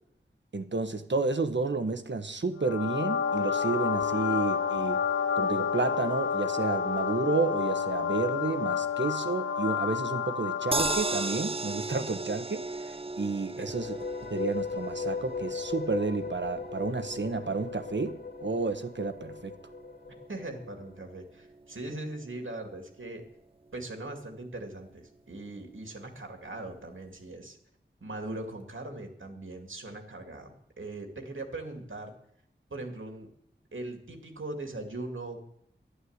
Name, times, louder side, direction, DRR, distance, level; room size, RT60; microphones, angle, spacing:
voice 1, 0.5-5.0 5.3-14.0 14.3-19.5, right 3 dB, 65° right, 9 dB, 1.2 m, -31 dB
sound 1, 2.6-11.4, left 6 dB, 80° left, 0.9 m, -29 dB
sound 2, 10.7-22.9 23.3-23.4 23.7-23.8, right 3 dB, 30° right, 0.5 m, -38 dB
sound 3, 13.6-20.9, left 5 dB, 55° left, 0.4 m, -38 dB
voice 2, 20.3-23.3 23.7-27.6 28.0-32.1 32.7-33.3 33.7-35.5, right 2 dB, 85° right, 4 dB, 2.3 m, -40 dB
11.5 x 11.5 x 8.0 m, 0.71 s
wide cardioid pair, 60°, 20 cm